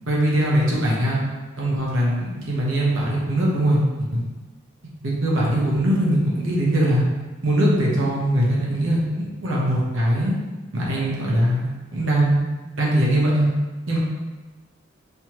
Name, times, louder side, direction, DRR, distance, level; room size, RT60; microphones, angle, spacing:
voice 1, 0.1-1.2 1.6-3.8 4.1-4.3 5.0-7.0 7.4-10.3 10.7-11.7 11.9-12.4 12.8-13.5 13.9-14.0, right 1 dB, 75° right, -4 dB, 1.1 m, -21 dB
5.6 x 3.0 x 3.0 m, 1.2 s
head